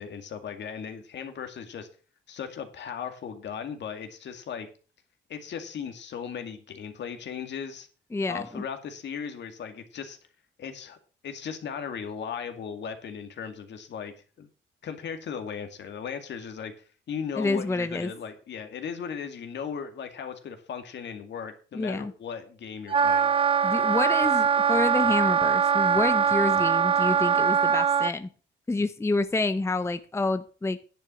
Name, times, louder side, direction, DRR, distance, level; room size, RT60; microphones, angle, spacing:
voice 1, 0.0-1.9 2.3-4.7 5.3-7.9 8.3-10.2 10.6-11.0 11.2-14.5 14.8-16.7 17.1-23.3, left 7 dB, 65° left, 7 dB, 2.1 m, -37 dB
voice 2, 8.1-8.6 17.4-18.1 21.7-22.1 23.6-28.3 28.7-30.8, left 3 dB, 15° left, 11 dB, 0.7 m, -28 dB
Wind instrument woodwind instrument, 22.9-28.1, right 7 dB, 25° right, 0.6 m, -22 dB
10.5 x 7.3 x 6.1 m, 0.39 s
cardioid pair, 90°, 20 cm